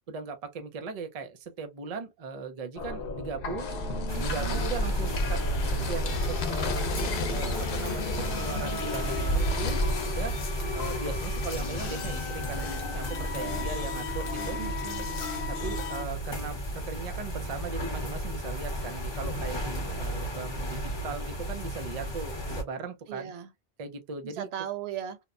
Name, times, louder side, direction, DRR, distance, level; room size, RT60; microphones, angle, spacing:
voice 1, 0.1-3.7 4.2-6.9 7.3-10.4 10.7-14.6 15.5-23.3 23.8-24.5, right 5 dB, 45° right, 0.6 m, -38 dB
sound 1, 2.8-16.0, left 2 dB, 65° left, 0.9 m, -34 dB
sound 2, 3.6-10.1, left 7 dB, 85° left, 0.9 m, -41 dB
sound 3, 4.1-22.6, equal, 25° left, 0.8 m, -33 dB
voice 2, 4.1-4.7 13.4-13.7 14.4-15.1 23.1-23.5 24.2-25.2, right 10 dB, 80° right, 0.8 m, -38 dB
2.9 x 2.1 x 2.3 m
omnidirectional pair, 1.1 m